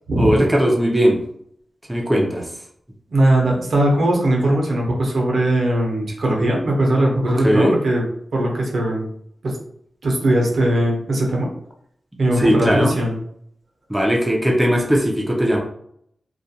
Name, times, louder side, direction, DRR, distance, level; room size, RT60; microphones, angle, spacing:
voice 1, 0.2-1.2 1.9-2.4 7.4-7.7 12.4-12.9 13.9-15.6, equal, 10° right, -1 dB, 0.4 m, -18 dB
voice 2, 3.1-8.0 8.3-9.1 9.4-9.6 10.0-11.5 12.2-13.2, right 1 dB, 70° right, -1 dB, 0.7 m, -19 dB
2.4 x 2.2 x 2.7 m, 0.69 s
wide cardioid pair, 100°, 0 cm